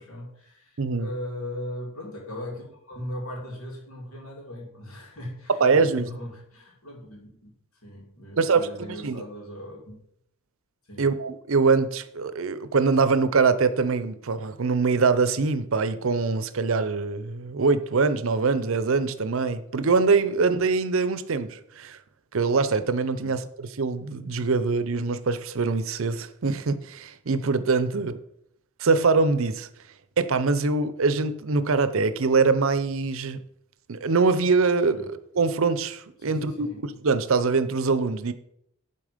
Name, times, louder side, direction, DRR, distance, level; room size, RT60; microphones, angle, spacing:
voice 1, 0.0-7.5 7.8-10.0 10.9-11.1 23.2-23.4 27.9-28.1 34.9-35.1 36.2-36.8, left 1 dB, 85° left, -1 dB, 3.0 m, -38 dB
voice 2, 0.8-1.1 5.6-6.1 8.4-8.6 9.0-9.2 11.0-22.0 22.3-28.2 28.8-29.7 30.2-33.4 33.9-38.3, right 4 dB, 65° right, 12 dB, 0.6 m, -23 dB
11.0 x 4.2 x 5.0 m, 0.75 s
head